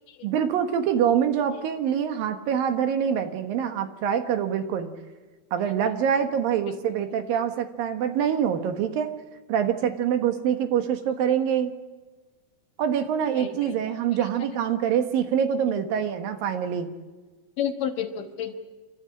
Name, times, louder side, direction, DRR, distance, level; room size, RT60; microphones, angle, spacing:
voice 1, 0.2-4.9 5.5-9.1 9.5-11.7 12.8-16.9, right 8 dB, 70° right, 7 dB, 3.0 m, -25 dB
voice 2, 13.4-13.9 14.2-14.3 15.7-15.8 17.6-18.5, left 9 dB, 65° left, 6 dB, 2.8 m, -32 dB
28.0 x 13.5 x 8.6 m, 1.3 s
omnidirectional pair, 4.4 m